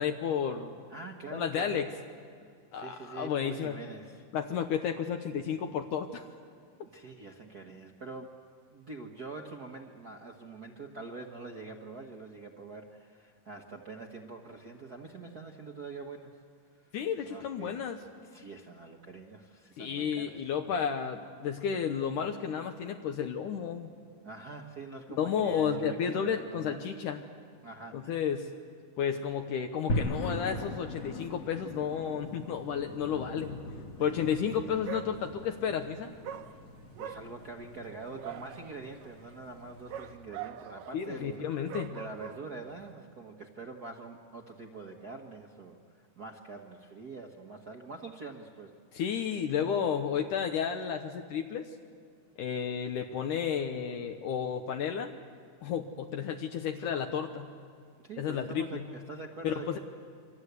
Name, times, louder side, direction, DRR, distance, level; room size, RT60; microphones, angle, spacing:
voice 1, 0.0-0.8 1.3-1.9 2.7-3.8 4.3-6.2 16.9-18.0 19.8-23.9 25.2-27.2 27.9-28.5 29.0-33.6 34.0-36.1 40.9-42.0 48.9-51.7 52.4-55.1 55.6-57.5 58.2-58.8 59.4-59.8, left 7 dB, 75° left, 5 dB, 2.5 m, -32 dB
voice 2, 0.9-1.9 2.4-4.3 6.8-8.3 8.7-16.4 16.8-17.0 17.2-17.8 18.2-20.5 24.2-26.8 27.6-28.2 34.0-34.9 37.0-49.0 58.0-59.8, right 3 dB, 55° right, 2 dB, 1.1 m, -45 dB
sound 1, 29.9-40.2, left 1 dB, 55° left, 3.0 m, -40 dB
Dog, 34.4-34.6 34.8-35.6 36.2-42.9, right 9 dB, 80° right, 2.6 m, -44 dB
28.5 x 24.5 x 8.2 m, 2.2 s
omnidirectional pair, 3.8 m